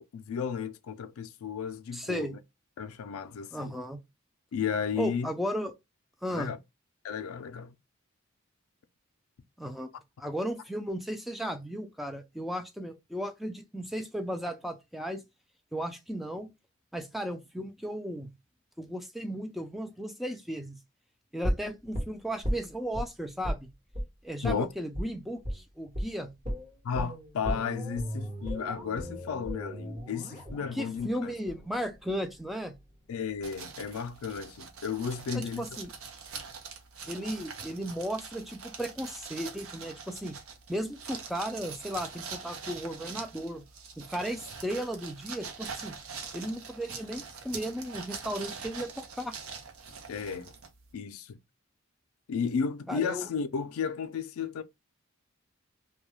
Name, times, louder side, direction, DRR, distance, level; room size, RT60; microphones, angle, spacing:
voice 1, 0.1-2.4 2.8-3.8 4.5-5.3 6.3-6.6 7.0-7.7 24.4-24.7 26.8-31.3 33.1-35.7 50.1-50.5 50.9-51.4 52.3-54.6, left 6 dB, 85° left, 0.4 m, -33 dB
voice 2, 1.9-2.4 3.5-4.0 5.0-5.7 6.2-6.5 9.6-9.9 10.2-15.2 15.7-16.5 16.9-18.3 18.8-20.8 21.3-23.7 24.2-26.3 30.7-32.7 35.3-35.9 37.1-40.3 40.7-43.6 44.0-45.9 46.3-49.4 52.9-53.3, equal, ahead, 0.3 m, -35 dB
sound 1, 21.4-23.1 23.4-23.6 23.9-24.1 24.4-24.6 24.9-25.1 25.4-25.6 25.9-26.1 26.4-32.4 32.7-32.8, equal, 35° right, 1.1 m, -35 dB
sound 2, 33.4-50.9, right 5 dB, 80° right, 0.6 m, -43 dB
2.2 x 2.2 x 3.1 m
head